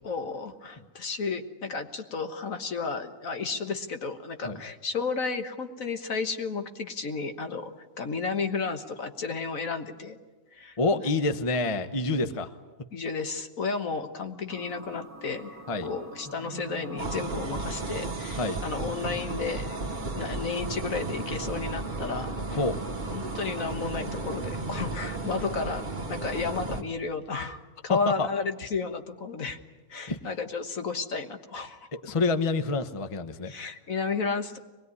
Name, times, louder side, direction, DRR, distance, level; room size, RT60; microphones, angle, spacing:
voice 1, 0.0-7.7 8.0-10.2 10.5-11.1 12.9-22.6 23.1-29.6 29.9-31.9 33.4-34.6, left 4 dB, 65° left, 7 dB, 1.8 m, -33 dB
voice 2, 10.8-12.5 15.7-15.9 18.4-18.6 22.5-22.8 27.9-28.3 30.1-30.2 31.9-33.5, left 3 dB, 25° left, 9 dB, 0.9 m, -27 dB
sound 1, 14.5-23.7, right 1 dB, 10° right, 1.9 m, -44 dB
sound 2, 17.0-26.8, right 3 dB, 30° right, 1.6 m, -34 dB
24.0 x 20.5 x 9.7 m, 1.2 s
omnidirectional pair, 1.6 m